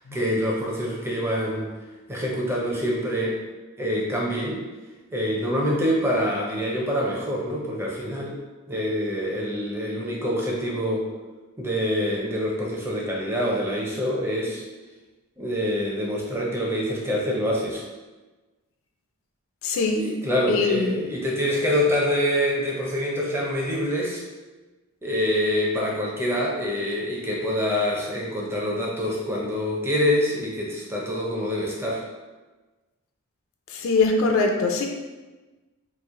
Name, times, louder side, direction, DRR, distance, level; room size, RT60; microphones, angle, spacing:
voice 1, 0.1-1.7 2.1-3.4 3.8-4.6 5.1-8.4 8.7-11.1 11.6-14.6 15.4-17.8 19.9-24.2 25.0-32.0, equal, 10° right, -3 dB, 0.5 m, -25 dB
voice 2, 19.6-20.2 20.5-21.0 33.7-34.8, left 3 dB, 60° left, 2 dB, 0.3 m, -22 dB
3.0 x 2.4 x 3.6 m, 1.2 s
head